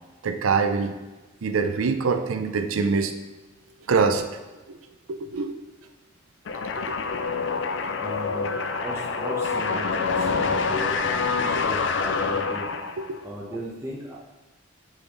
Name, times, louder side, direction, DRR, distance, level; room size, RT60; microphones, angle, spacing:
voice 1, 0.2-0.9 1.4-3.1 3.9-4.2 4.7-4.8 5.1-5.6 6.8-7.0 11.6-11.7 13.0-13.2, right 5 dB, 85° right, 7 dB, 0.5 m, -24 dB
sound 1, 6.5-13.2, left 4 dB, 60° left, 0.4 m, -26 dB
voice 2, 8.0-12.7 13.2-14.2, equal, 15° right, -5 dB, 0.8 m, -37 dB
8.8 x 3.9 x 3.9 m, 1.1 s
head